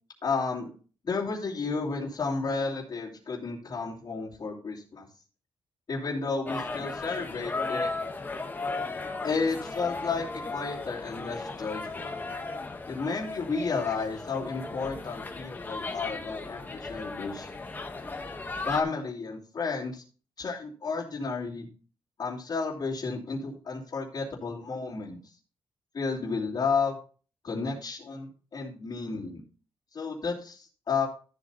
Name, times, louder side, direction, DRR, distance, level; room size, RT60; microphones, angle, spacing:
voice 1, 0.2-0.7 1.0-5.1 5.9-7.9 9.2-12.2 12.9-17.6 18.6-20.0 20.4-21.7 22.2-25.2 25.9-27.0 27.4-29.4 29.9-31.1, left 4 dB, 40° left, -6 dB, 2.7 m, -32 dB
sound 1, 6.5-18.8, left 3 dB, 20° left, 1.0 m, -36 dB
13.0 x 7.4 x 2.8 m, 0.38 s
wide cardioid pair, 165°, 10 cm